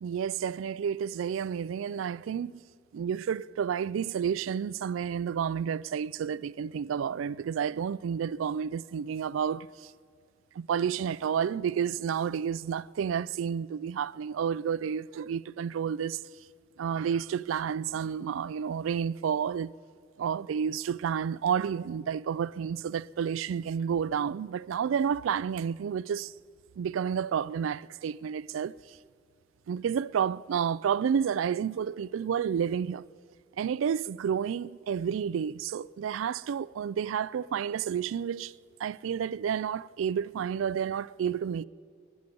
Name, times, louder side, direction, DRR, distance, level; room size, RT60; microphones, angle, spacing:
voice 1, 0.0-2.5 2.9-9.9 10.6-16.2 16.8-19.7 20.2-26.3 26.8-29.0 29.7-33.0 33.6-38.5 38.8-41.6, right 7 dB, 80° right, 0.3 m, -30 dB
23.5 x 10.5 x 5.3 m
head